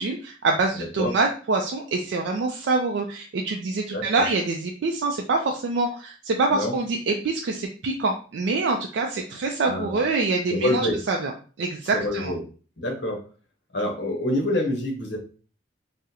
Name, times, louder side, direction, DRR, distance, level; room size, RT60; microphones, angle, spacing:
voice 1, 0.0-11.3 11.6-12.3, right 3 dB, 65° right, 1 dB, 0.3 m, -25 dB
voice 2, 0.7-1.1 3.9-4.3 6.5-6.8 9.6-10.0 10.5-11.0 11.9-12.4 12.8-13.2 13.7-15.2, left 1 dB, 60° left, 1 dB, 0.8 m, -26 dB
3.6 x 2.1 x 2.7 m, 0.39 s
head